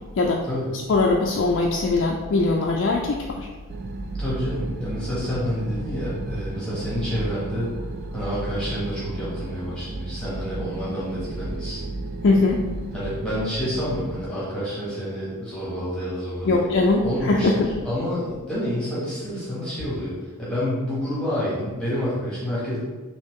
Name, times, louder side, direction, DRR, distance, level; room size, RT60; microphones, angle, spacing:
voice 1, 0.9-3.5 12.2-12.6 16.5-17.7, left 3 dB, 60° left, -1 dB, 0.4 m, -21 dB
sound 1, 3.7-14.3, right 2 dB, 50° right, 0.3 m, -33 dB
voice 2, 4.2-7.7 8.1-11.9 12.9-16.6 17.0-22.8, equal, 5° left, -9 dB, 1.3 m, -28 dB
4.2 x 2.9 x 3.6 m, 1.3 s
head